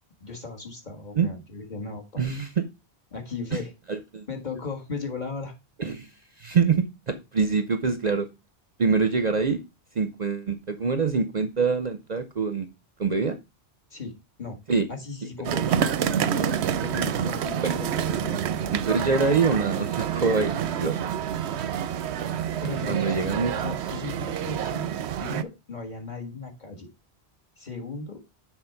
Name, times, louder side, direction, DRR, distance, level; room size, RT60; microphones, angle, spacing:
voice 1, 0.2-2.4 3.1-3.7 4.3-5.5 13.9-14.1 14.4-14.6 14.9-16.4 16.8-18.4 22.6-24.9 25.2-26.9 27.6-28.2, left 4 dB, 45° left, 1.9 m, -36 dB
voice 2, 2.2-2.6 3.9-4.3 5.8-6.1 6.4-8.3 8.8-9.6 10.0-12.7 13.0-13.4 14.7-14.9 16.3-16.6 17.6-17.8 18.9-21.1 22.9-23.6, right 5 dB, 45° right, 0.7 m, -25 dB
sound 1, 15.4-25.4, right 9 dB, 85° right, 0.9 m, -28 dB
6.7 x 4.3 x 5.7 m
omnidirectional pair, 1.1 m